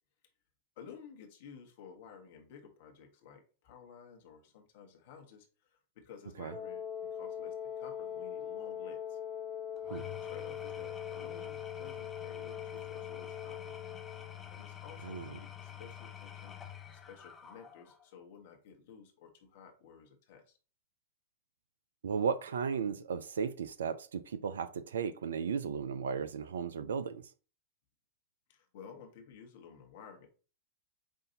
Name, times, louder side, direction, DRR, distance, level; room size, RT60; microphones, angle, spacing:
voice 1, 0.8-9.2 9.8-10.0 10.3-13.7 14.5-16.6 16.9-20.6 28.5-30.3, left 7 dB, 55° left, 1.1 m, -54 dB
Wind instrument woodwind instrument, 6.5-14.4, left 8 dB, ahead, 1.1 m, -41 dB
Engine / Tools, 9.8-18.1, left 9 dB, 20° left, 0.7 m, -48 dB
voice 2, 22.0-27.3, right 6 dB, 70° right, 0.3 m, -35 dB
5.4 x 2.6 x 2.7 m
figure-of-eight pair, 95°, 0 cm